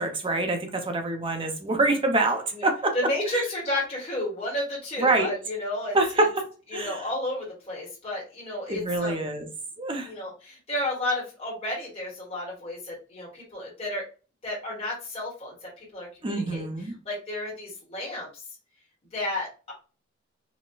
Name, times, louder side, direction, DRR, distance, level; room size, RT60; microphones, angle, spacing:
voice 1, 0.0-3.0 3.3-3.4 5.0-5.3 5.9-6.5 6.7-7.0 8.7-9.5 9.8-10.1 16.2-16.9, right 2 dB, 25° right, 0.6 m, -26 dB
voice 2, 2.9-6.3 6.7-9.2 10.0-14.1 14.4-16.6 17.0-18.4 19.1-19.7, left 1 dB, 30° left, 1.1 m, -32 dB
4.1 x 2.1 x 2.3 m
head